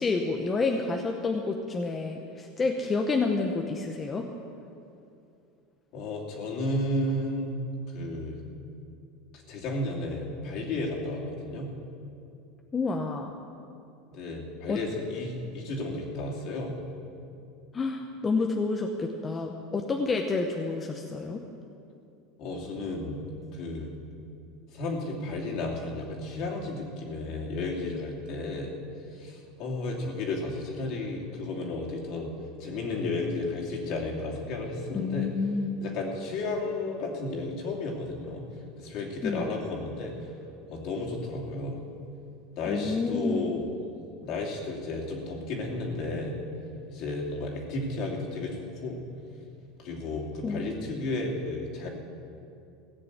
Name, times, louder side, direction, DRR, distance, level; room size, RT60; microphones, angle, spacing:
voice 1, 0.0-4.3 12.7-13.3 14.7-14.8 17.7-21.4 34.9-35.8 39.2-39.6 42.7-43.5 50.4-50.9, left 3 dB, 20° left, 2 dB, 0.9 m, -29 dB
voice 2, 5.9-7.6 7.9-8.4 9.3-11.7 14.1-16.7 22.4-23.2 23.5-23.9 24.7-28.7 29.1-32.3 32.6-35.3 35.8-38.4 38.8-40.1 40.7-41.8 42.5-43.6 44.2-46.4 46.9-49.0 49.8-51.9, left 2 dB, 55° left, -1 dB, 2.7 m, -33 dB
16.5 x 6.7 x 8.3 m, 2.6 s
supercardioid pair, 120°, 0 cm